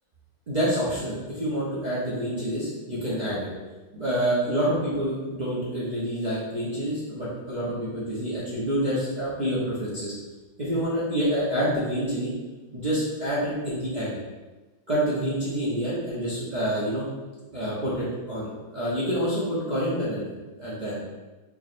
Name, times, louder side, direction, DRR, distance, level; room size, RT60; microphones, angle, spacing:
voice 1, 0.5-3.5 3.9-10.1 10.6-12.3 12.7-14.2 14.9-17.1 17.5-21.0, equal, 40° right, -10 dB, 0.6 m, -27 dB
4.9 x 3.1 x 2.5 m, 1.2 s
omnidirectional pair, 1.9 m